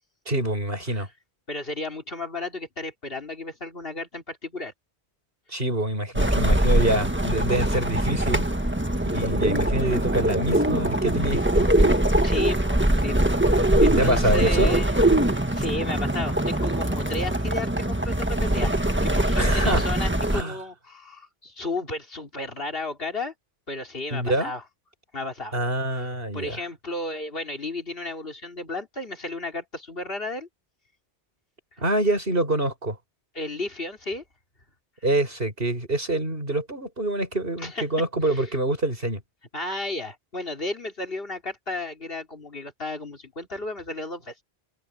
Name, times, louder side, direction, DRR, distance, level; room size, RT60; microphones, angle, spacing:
voice 1, 0.2-1.1 5.5-8.4 9.1-11.9 14.0-14.8 19.4-19.8 20.3-20.6 24.1-24.5 25.5-26.6 31.8-33.0 35.0-39.2, right 1 dB, 55° right, 7.0 m, -26 dB
voice 2, 1.5-4.7 12.2-13.2 13.4-14.9 15.3-18.7 19.0-23.3 23.7-24.6 25.1-25.5 25.9-30.5 33.4-34.2 37.6-37.8 38.2-38.5 39.5-44.3, left 2 dB, 60° left, 3.7 m, -33 dB
sound 1, 6.1-20.4, right 1 dB, 10° right, 1.4 m, -22 dB
open air
omnidirectional pair, 1.1 m